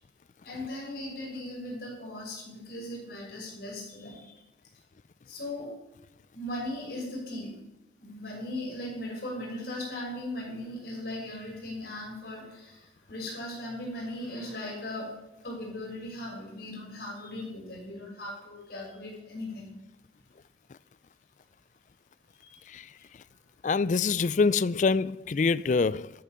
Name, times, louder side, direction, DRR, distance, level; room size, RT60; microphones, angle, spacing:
voice 1, 0.4-4.3 5.3-5.7 6.3-7.5 8.0-15.1 15.4-19.7 22.4-22.7, left 1 dB, 55° left, 6.6 m, -38 dB
voice 2, 23.6-26.1, left 4 dB, 40° left, 0.4 m, -25 dB
13.5 x 8.8 x 6.9 m
head